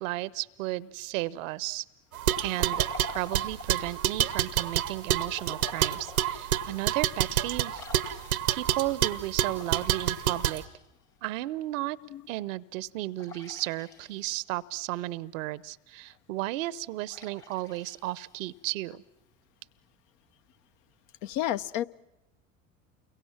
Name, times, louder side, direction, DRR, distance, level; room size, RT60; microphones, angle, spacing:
voice 1, 0.0-1.8 2.4-7.8 8.5-10.6 11.2-12.0 12.3-19.0, right 17 dB, 65° right, 21 dB, 0.8 m, -34 dB
sound 1, 2.1-10.6, right 11 dB, 85° right, 1.0 m, -28 dB
Liquid, 2.2-3.9 5.3-6.4 6.9-7.0 7.7-8.7 9.5-11.1 13.2-14.5 17.1-18.7, left 4 dB, 90° left, 2.4 m, -47 dB
voice 2, 21.2-21.8, left 12 dB, 65° left, 12 dB, 0.9 m, -30 dB
29.0 x 22.5 x 7.2 m, 0.92 s
hypercardioid pair, 70°, 42 cm